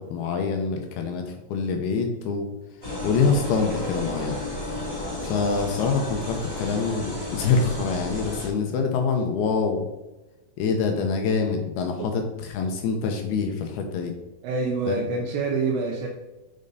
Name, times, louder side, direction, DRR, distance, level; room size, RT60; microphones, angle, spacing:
voice 1, 0.0-2.5 3.0-4.4 5.2-9.9 10.6-14.2 14.9-15.0, left 5 dB, 75° left, 4 dB, 2.4 m, -25 dB
sound 1, 2.8-8.5, left 1 dB, 10° left, 1.5 m, -32 dB
voice 2, 14.4-16.1, right 4 dB, 75° right, 1 dB, 2.7 m, -26 dB
8.8 x 5.3 x 4.0 m, 1.1 s
omnidirectional pair, 5.2 m